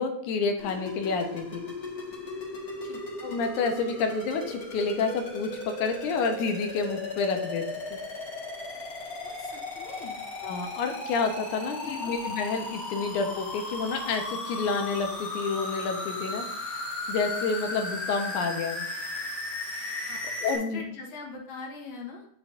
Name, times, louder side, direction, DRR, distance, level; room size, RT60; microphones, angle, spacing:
voice 1, 0.0-1.6 3.2-7.7 10.4-16.5 17.1-18.9 20.4-20.8, left 4 dB, 80° left, 5 dB, 2.3 m, -29 dB
sound 1, 0.6-20.6, left 2 dB, 40° left, 1.6 m, -36 dB
voice 2, 9.2-10.2 11.7-12.1 20.1-20.2 20.5-22.3, left 4 dB, 65° left, -1 dB, 2.6 m, -42 dB
9.1 x 5.6 x 2.6 m, 0.72 s
omnidirectional pair, 3.6 m